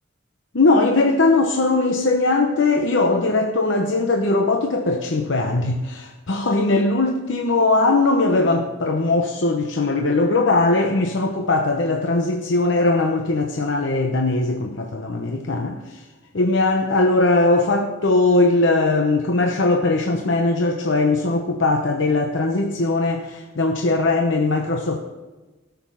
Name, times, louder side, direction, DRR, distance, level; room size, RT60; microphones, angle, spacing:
voice 1, 0.5-16.0 16.3-25.0, left 2 dB, 65° left, 3 dB, 0.8 m, -20 dB
13.0 x 6.9 x 5.6 m, 1.2 s
head